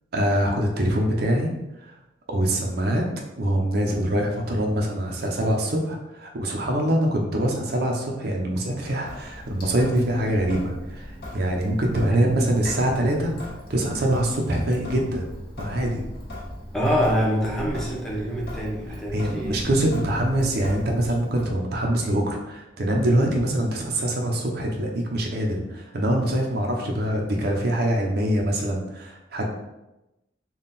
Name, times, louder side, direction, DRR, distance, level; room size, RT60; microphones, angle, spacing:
voice 1, 0.1-1.5 1.9-2.0 2.3-3.1 3.4-13.3 13.7-15.3 15.6-16.1 19.1-29.5, right 1 dB, 60° right, 1 dB, 0.6 m, -24 dB
Sink (filling or washing) / Drip, 9.0-21.5, left 1 dB, 60° left, 1.3 m, -38 dB
voice 2, 12.1-12.5 13.2-13.3 16.7-19.6, equal, 5° left, -4 dB, 0.7 m, -25 dB
3.6 x 2.3 x 4.0 m, 0.94 s
head